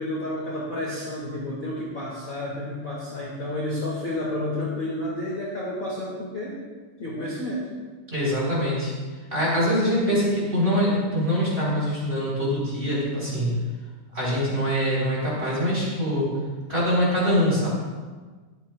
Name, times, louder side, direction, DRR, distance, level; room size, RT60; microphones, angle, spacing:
voice 1, 0.0-6.6 7.0-7.7, left 1 dB, 60° left, -7 dB, 1.2 m, -30 dB
voice 2, 8.1-8.9 9.3-13.5 14.1-16.3 16.7-17.7, equal, 15° right, -6 dB, 3.5 m, -23 dB
23.0 x 8.5 x 2.4 m, 1.4 s
omnidirectional pair, 5.9 m